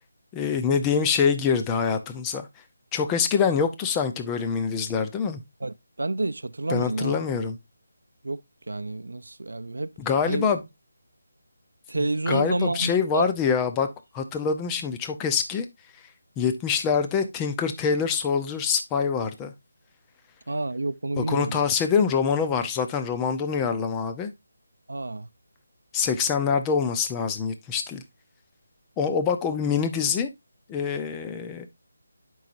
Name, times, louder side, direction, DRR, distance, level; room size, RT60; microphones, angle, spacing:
voice 1, 0.3-2.5 2.9-5.4 6.7-7.6 10.0-10.6 11.9-13.9 14.1-15.6 16.4-19.5 21.2-24.3 25.9-28.0 29.0-30.3 30.7-31.7, left 6 dB, 10° left, 0.6 m, -25 dB
voice 2, 5.6-7.2 8.2-8.4 8.7-9.9 10.3-10.5 11.9-13.3 20.5-21.6 24.9-25.3, right 2 dB, 90° right, 0.4 m, -29 dB
10.5 x 5.5 x 2.6 m
figure-of-eight pair, 170°, 0 cm